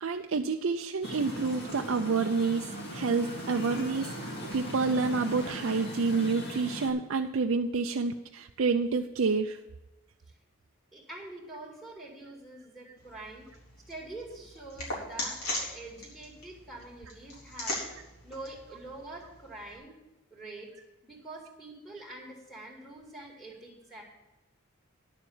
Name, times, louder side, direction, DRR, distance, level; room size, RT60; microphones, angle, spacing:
voice 1, 0.0-2.6 2.9-9.6, right 4 dB, 65° right, 4 dB, 0.5 m, -28 dB
sound 1, 1.0-6.9, equal, 50° left, 2.5 m, -39 dB
voice 2, 10.9-13.5 13.9-20.0 20.3-20.7 21.0-24.0, right 2 dB, ahead, -3 dB, 2.4 m, -45 dB
sound 2, 13.0-19.8, left 2 dB, 80° left, 4.0 m, -40 dB
10.5 x 7.0 x 7.2 m, 1.0 s
head